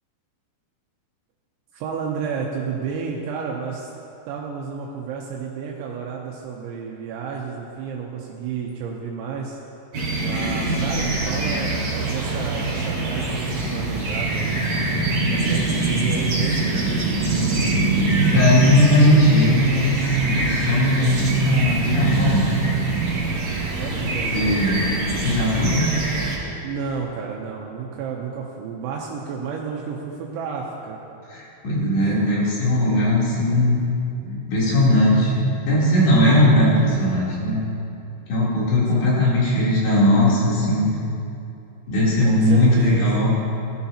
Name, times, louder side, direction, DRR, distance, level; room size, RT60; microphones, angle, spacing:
voice 1, 1.7-3.9 4.3-9.6 10.2-14.6 15.3-16.7 23.8-24.6 26.6-31.0 32.0-32.2 38.7-39.3 42.2-43.1, right 6 dB, 80° right, -1 dB, 3.2 m, -31 dB
sound 1, 9.9-26.4, right 2 dB, 40° right, 3.5 m, -23 dB
voice 2, 18.3-22.4 24.3-24.8 25.2-25.9 31.3-33.8 34.2-37.6 38.3-40.9 41.9-43.3, left 1 dB, 70° left, -8 dB, 5.6 m, -18 dB
19.0 x 13.5 x 2.9 m, 2.8 s
omnidirectional pair, 5.4 m